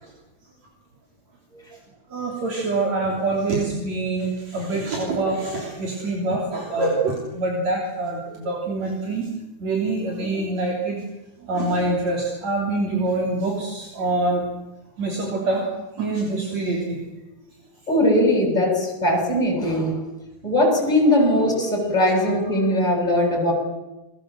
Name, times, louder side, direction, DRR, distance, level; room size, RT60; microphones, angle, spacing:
voice 1, 2.1-9.3 9.6-11.0 11.4-14.4 15.0-15.7 16.0-17.0, right 2 dB, 65° right, 0 dB, 4.6 m, -25 dB
voice 2, 17.9-20.0 20.4-23.5, left 1 dB, 15° left, 2 dB, 7.8 m, -20 dB
29.0 x 21.0 x 7.7 m, 1.0 s
omnidirectional pair, 3.4 m